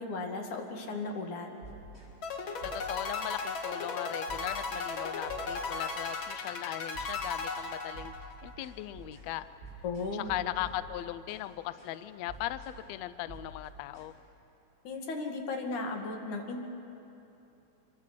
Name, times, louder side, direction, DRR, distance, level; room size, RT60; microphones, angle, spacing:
voice 1, 0.0-1.5 9.8-10.3 14.9-16.6, left 3 dB, 65° left, 2 dB, 3.4 m, -36 dB
sound 1, 1.6-2.2 2.6-3.5 3.8-4.0 4.3-4.8 5.3-6.2 6.4-6.7 6.9-7.5 7.9-11.5 11.8-12.0 12.3-12.8 13.3-14.1, right 2 dB, 20° left, 5.7 m, -49 dB
sound 2, 2.2-8.5, left 4 dB, 50° left, 1.6 m, -36 dB
voice 2, 2.6-8.1 8.4-9.5 10.1-14.1, left 14 dB, 85° left, 14 dB, 1.5 m, -38 dB
25.5 x 23.5 x 6.7 m, 2.9 s
omnidirectional pair, 3.8 m